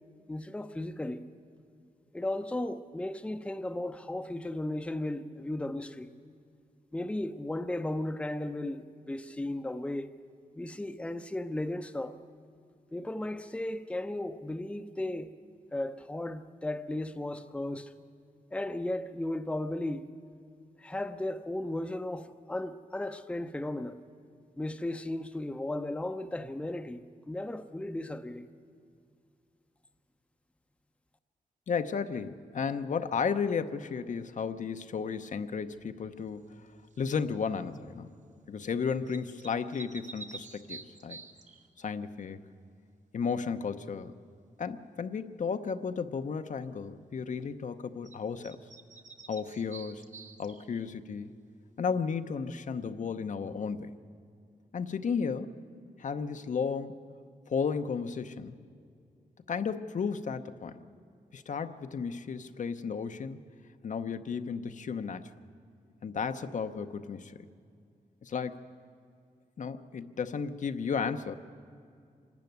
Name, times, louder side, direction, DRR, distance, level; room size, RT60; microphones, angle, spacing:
voice 1, 0.3-1.2 2.1-6.1 6.9-10.1 10.5-12.2 12.9-15.3 15.7-17.9 18.5-20.1 20.8-24.0 24.6-28.5, left 1 dB, 10° left, 0.7 m, -35 dB
voice 2, 31.7-36.6 37.0-38.1 38.5-41.2 41.8-42.4 43.1-44.1 44.6-48.6 49.3-50.1 50.4-51.4 51.8-54.0 54.7-55.5 56.0-57.0 57.5-58.6 59.5-60.8 61.3-63.4 63.8-65.3 66.0-67.4 68.2-68.6 69.6-71.3, left 6 dB, 60° left, 0.8 m, -33 dB
sound 1, 36.9-37.2 39.1-41.7 48.0-48.2 48.4-50.9, right 4 dB, 55° right, 1.3 m, -48 dB
26.0 x 12.5 x 9.3 m
wide cardioid pair, 125°, 15 cm